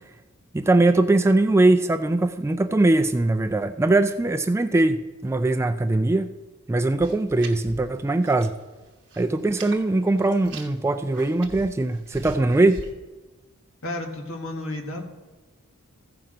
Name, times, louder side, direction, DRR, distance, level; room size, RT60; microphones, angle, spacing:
voice 1, 0.5-6.3 6.7-8.5 9.2-12.8, right 2 dB, 10° right, 8 dB, 0.3 m, -21 dB
sound 1, 7.0-8.6 8.9-9.8 10.2-12.9, right 3 dB, 55° right, 1.1 m, -42 dB
voice 2, 13.8-15.0, left 1 dB, 65° left, 2 dB, 1.6 m, -32 dB
15.0 x 5.9 x 5.0 m, 1.2 s
head